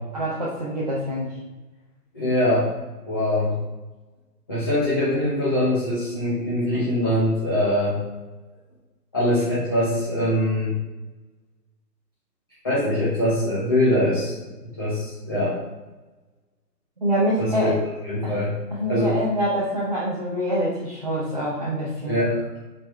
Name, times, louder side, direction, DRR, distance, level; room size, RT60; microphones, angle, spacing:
voice 1, 0.1-1.3 17.0-17.7 18.2-18.4 18.7-22.2, equal, 25° right, -7 dB, 0.7 m, -25 dB
voice 2, 2.1-2.7 3.1-3.5 4.5-8.0 9.1-10.7 12.6-14.3 14.8-15.6 17.4-17.7 18.0-18.5 18.9-19.1 22.1-22.3, left 1 dB, 15° left, -11 dB, 0.9 m, -22 dB
7.7 x 4.1 x 3.3 m, 1.2 s
hypercardioid pair, 170°, 49 cm